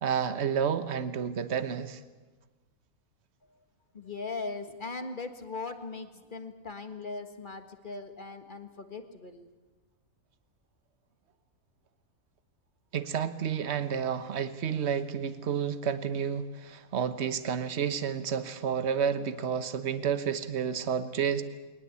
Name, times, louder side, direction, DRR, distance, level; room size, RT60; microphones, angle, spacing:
voice 1, 0.0-2.0 12.9-21.4, right 7 dB, 50° right, 11 dB, 1.3 m, -30 dB
voice 2, 3.9-9.5, left 3 dB, 35° left, 7 dB, 1.7 m, -39 dB
21.5 x 19.5 x 8.4 m, 1.2 s
omnidirectional pair, 1.5 m